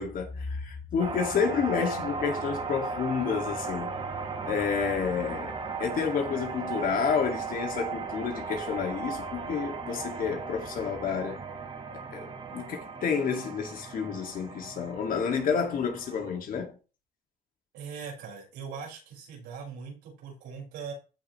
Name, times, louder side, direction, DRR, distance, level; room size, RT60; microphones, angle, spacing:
voice 1, 0.0-3.9 4.5-5.5 5.8-11.4 11.9-12.3 12.5-16.7, left 6 dB, 55° left, 2.3 m, -30 dB
sound 1, 1.0-16.4, right 4 dB, 30° right, 1.8 m, -36 dB
voice 2, 17.7-20.9, right 6 dB, 90° right, 5.4 m, -41 dB
14.5 x 5.2 x 3.2 m
cardioid pair, 110°, 17 cm